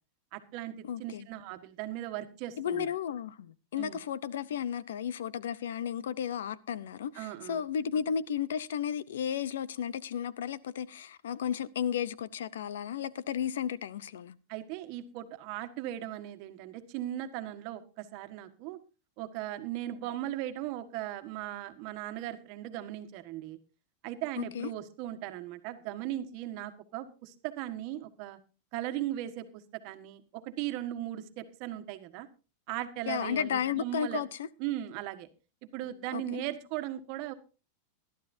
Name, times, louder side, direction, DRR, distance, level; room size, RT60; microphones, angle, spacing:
voice 1, 0.3-2.9 3.8-4.0 7.1-7.6 14.5-18.8 19.2-23.6 24.0-28.4 28.7-32.3 32.7-34.2 34.6-35.3 35.7-37.3, right 13 dB, 50° right, 1.5 m, -38 dB
voice 2, 0.8-1.3 2.6-14.3 24.4-24.7 33.1-34.5 36.1-36.4, left 8 dB, 90° left, 0.7 m, -34 dB
20.0 x 12.0 x 2.7 m
supercardioid pair, 140°, 0 cm